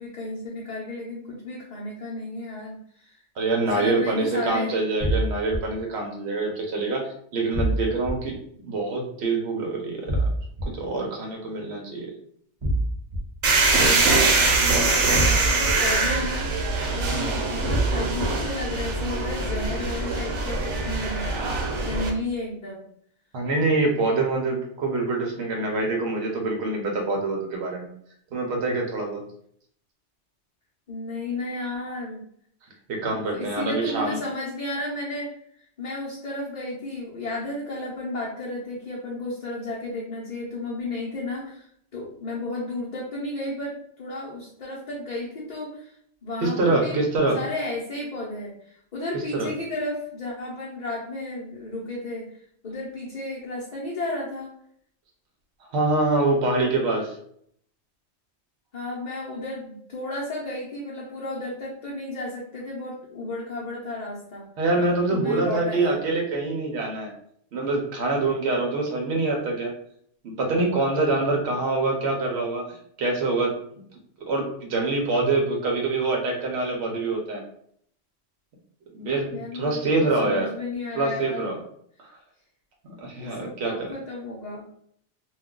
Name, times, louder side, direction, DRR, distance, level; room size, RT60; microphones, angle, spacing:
voice 1, 0.0-3.2 3.8-4.7 13.8-22.8 30.9-32.2 33.1-35.3 35.8-41.7 41.9-45.9 46.2-47.0 47.3-52.3 52.6-54.5 58.7-64.5 65.1-66.0 79.3-81.5 83.2-84.7, left 2 dB, 45° left, -5 dB, 0.7 m, -33 dB
voice 2, 3.4-10.2 10.6-12.1 17.1-17.3 23.3-27.9 28.3-29.2 32.9-34.2 46.4-47.4 49.1-49.5 55.7-57.2 64.6-67.1 67.5-69.7 70.2-73.8 74.2-77.4 78.9-80.5 80.9-81.6 82.0-82.2 82.8-83.9, right 3 dB, 70° right, 0 dB, 0.9 m, -25 dB
sound 1, 5.0-5.6 7.5-8.1 10.1-10.6 12.6-13.2 15.1-15.7 17.7-18.3, right 1 dB, 35° right, 0.6 m, -24 dB
sound 2, 13.4-22.1, right 3 dB, 90° right, 1.0 m, -23 dB
2.3 x 2.3 x 3.7 m, 0.65 s
omnidirectional pair, 1.2 m